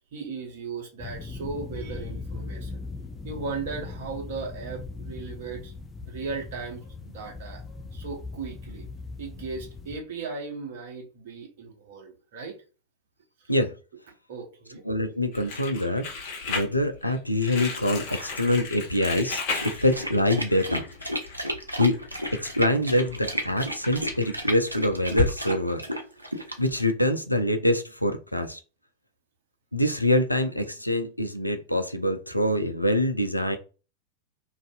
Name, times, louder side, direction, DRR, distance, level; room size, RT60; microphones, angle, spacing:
voice 1, 0.1-2.8 3.2-5.7 6.1-7.6 7.9-8.9 9.2-12.6 13.4-13.5 14.3-14.8, right 4 dB, 55° right, 0.8 m, -37 dB
sound 1, 1.0-10.0, left 3 dB, 10° left, 0.4 m, -39 dB
voice 2, 14.9-16.1 16.5-20.8 21.8-22.0 22.3-25.8 26.6-28.6 29.7-33.6, left 1 dB, 90° left, 0.3 m, -25 dB
Crumpling crinkling, 15.3-25.3, left 4 dB, 45° left, 0.9 m, -35 dB
sound 2, 19.5-26.8, equal, 85° right, 0.4 m, -32 dB
2.5 x 2.3 x 2.3 m
figure-of-eight pair, 90°, 0 cm